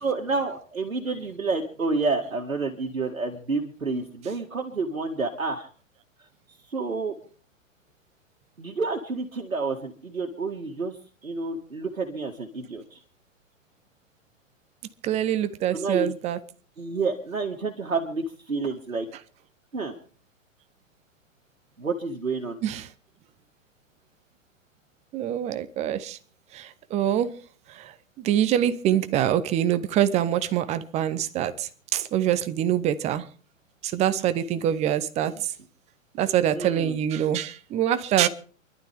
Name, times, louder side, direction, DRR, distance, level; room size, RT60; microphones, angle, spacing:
voice 1, 0.0-5.7 6.7-7.2 8.6-13.0 15.7-16.1 16.8-19.1 19.7-20.0 21.8-22.6 36.5-37.0, right 3 dB, 80° right, 1.9 m, -29 dB
voice 2, 15.0-16.4 22.6-22.9 25.1-26.2 26.5-27.3 27.7-33.3 33.8-35.5 36.1-38.3, right 10 dB, 15° right, 0.8 m, -25 dB
28.5 x 12.0 x 3.5 m
figure-of-eight pair, 110°, 40 cm